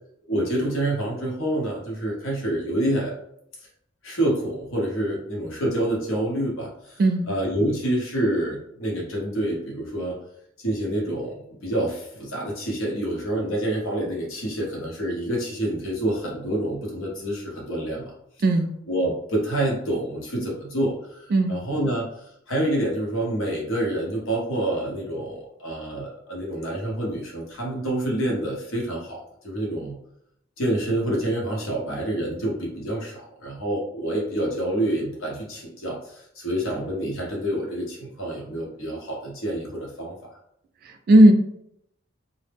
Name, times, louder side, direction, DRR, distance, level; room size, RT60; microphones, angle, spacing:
voice 1, 0.3-3.1 4.0-10.2 10.6-18.1 18.9-30.0 30.6-40.1, right 1 dB, 90° left, -2 dB, 0.8 m, -27 dB
voice 2, 7.0-7.3 18.4-18.7 21.3-21.6 41.1-41.3, right 1 dB, 50° right, 6 dB, 0.3 m, -15 dB
2.0 x 2.0 x 3.3 m, 0.74 s
head